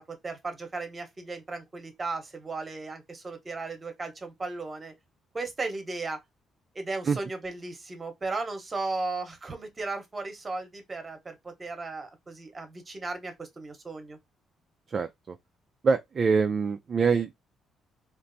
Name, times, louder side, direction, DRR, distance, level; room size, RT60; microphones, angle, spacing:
voice 1, 0.0-4.9 5.3-6.2 6.7-14.2, right 3 dB, 25° right, 0.9 m, -36 dB
voice 2, 14.9-15.4 15.8-17.3, right 5 dB, 40° right, 0.3 m, -25 dB
3.2 x 2.5 x 2.6 m
cardioid pair, 100°, 0 cm